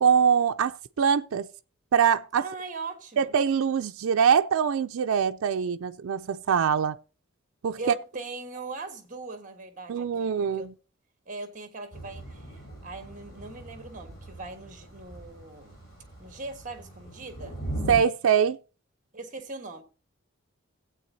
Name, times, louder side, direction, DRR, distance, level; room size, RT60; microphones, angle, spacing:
voice 1, 0.0-1.5 1.9-2.4 3.2-7.0 7.6-7.9 9.9-10.7 17.9-18.6, right 7 dB, 80° right, 0.4 m, -23 dB
voice 2, 2.4-3.3 7.8-10.7 11.3-15.8 16.2-17.6 19.1-19.8, right 2 dB, 40° right, 1.4 m, -40 dB
Thunder / Rain, 11.9-18.0, right 1 dB, 15° left, 6.2 m, -40 dB
16.0 x 8.3 x 2.7 m
head